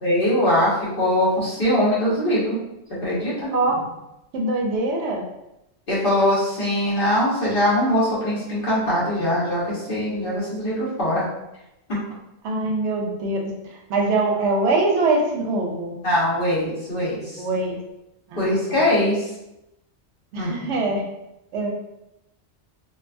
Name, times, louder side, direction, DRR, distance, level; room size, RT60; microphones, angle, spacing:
voice 1, 0.0-2.6 3.0-3.5 5.9-11.2 11.9-12.0 12.6-12.7 16.0-17.4 18.4-19.3 20.4-20.7, left 1 dB, 55° left, -8 dB, 1.2 m, -22 dB
voice 2, 4.3-5.3 12.4-16.0 17.4-17.8 18.3-18.8 20.3-21.0 21.5-21.7, right 2 dB, 85° right, 1 dB, 0.9 m, -23 dB
2.7 x 2.3 x 2.5 m, 0.88 s
omnidirectional pair, 1.1 m